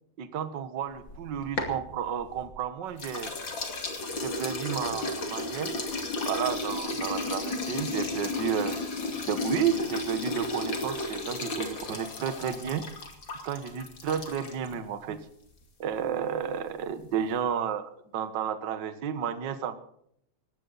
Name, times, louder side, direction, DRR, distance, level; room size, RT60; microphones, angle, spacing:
voice 1, 0.2-3.3 4.1-5.7 6.3-8.7 9.3-12.8 13.4-15.2 15.8-19.8, right 8 dB, 55° right, 10 dB, 1.2 m, -32 dB
sound 1, 1.0-2.6 3.0-14.7, left 2 dB, 35° left, 2.8 m, -33 dB
20.0 x 16.5 x 4.1 m, 0.68 s
omnidirectional pair, 3.9 m